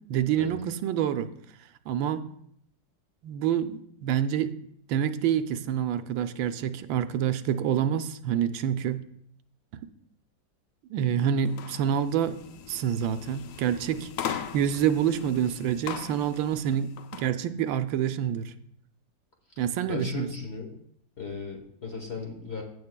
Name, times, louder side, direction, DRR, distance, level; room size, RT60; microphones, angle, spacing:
voice 1, 0.1-1.3 1.9-2.2 3.2-4.5 4.9-9.0 9.7-9.9 10.9-12.4 12.7-18.5 19.6-20.3, right 9 dB, 80° right, 10 dB, 1.3 m, -27 dB
sound 1, 11.5-17.3, left 9 dB, 90° left, 0.7 m, -39 dB
voice 2, 19.9-20.7 21.2-22.6, left 4 dB, 40° left, 1 dB, 1.0 m, -36 dB
16.0 x 7.0 x 2.2 m, 0.69 s
omnidirectional pair, 2.1 m